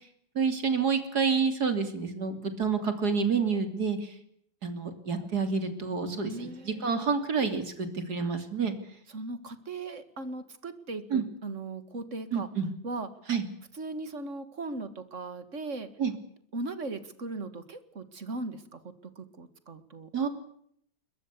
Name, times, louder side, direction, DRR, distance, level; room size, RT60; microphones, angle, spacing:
voice 1, 0.4-4.1 4.6-8.7 11.1-11.2 12.3-12.7 13.3-13.5 16.0-16.1 20.1-20.3, right 5 dB, 55° right, 8 dB, 3.5 m, -28 dB
voice 2, 6.1-7.1 9.1-12.5 12.8-13.1 13.7-15.9 16.5-20.1, right 3 dB, 40° right, 12 dB, 2.2 m, -38 dB
22.0 x 21.5 x 8.4 m, 0.68 s
omnidirectional pair, 2.0 m